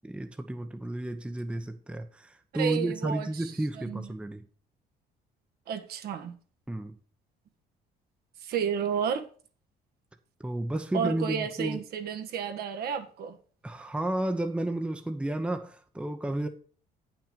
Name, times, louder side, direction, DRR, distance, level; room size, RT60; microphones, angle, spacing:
voice 1, 0.0-4.4 6.7-6.9 10.4-11.8 13.6-16.5, right 1 dB, 5° right, 0.9 m, -32 dB
voice 2, 2.5-4.0 5.7-6.3 8.4-9.3 10.9-13.4, right 7 dB, 65° right, 1.4 m, -32 dB
9.0 x 6.0 x 5.3 m
cardioid pair, 110°, 17 cm